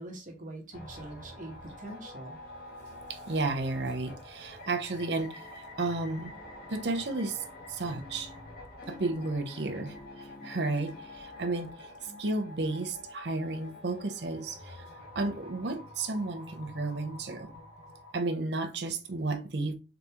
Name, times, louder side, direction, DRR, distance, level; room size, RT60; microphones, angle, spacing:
voice 1, 0.0-2.4 12.1-12.2, right 1 dB, 45° right, 1.1 m, -44 dB
sound 1, 0.7-18.1, left 1 dB, 55° left, 1.2 m, -48 dB
voice 2, 3.1-6.3 6.7-8.3 8.9-11.9 12.2-14.9 15.1-17.6 18.1-19.7, right 2 dB, 65° right, 0.7 m, -33 dB
sound 2, 5.4-12.5, left 3 dB, 25° left, 0.5 m, -53 dB
3.9 x 3.5 x 2.9 m
head